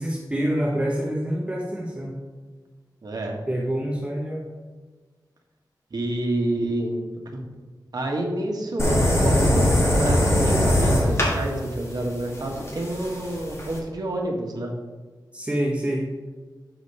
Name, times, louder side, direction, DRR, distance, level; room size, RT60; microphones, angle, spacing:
voice 1, 0.0-2.2 3.5-4.4 15.3-16.1, right 1 dB, 15° right, -2 dB, 1.0 m, -26 dB
voice 2, 3.0-3.3 5.9-6.9 7.3-7.4 7.9-9.7 10.0-14.7, right 1 dB, 65° right, 1 dB, 1.4 m, -28 dB
sound 1, 8.8-13.8, left 1 dB, 40° left, 1.9 m, -21 dB
7.1 x 5.2 x 5.4 m, 1.4 s
wide cardioid pair, 115°, 7 cm